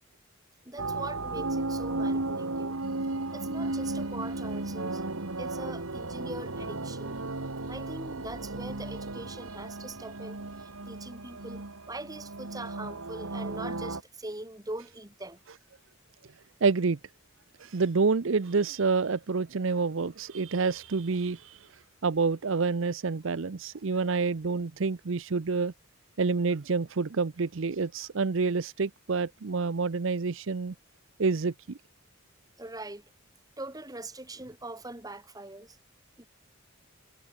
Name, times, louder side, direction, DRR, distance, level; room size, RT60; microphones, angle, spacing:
voice 1, 0.6-2.8 3.3-5.0 5.4-7.2 7.7-15.4 32.6-33.0 33.6-35.8 36.2-36.3, right 2 dB, 15° right, 2.3 m, -42 dB
sound 1, 0.8-14.0, right 2 dB, 80° right, 2.0 m, -35 dB
voice 2, 16.6-17.0 17.6-21.7 22.0-25.7 26.2-30.7 31.2-31.8, right 4 dB, 65° right, 0.6 m, -28 dB
head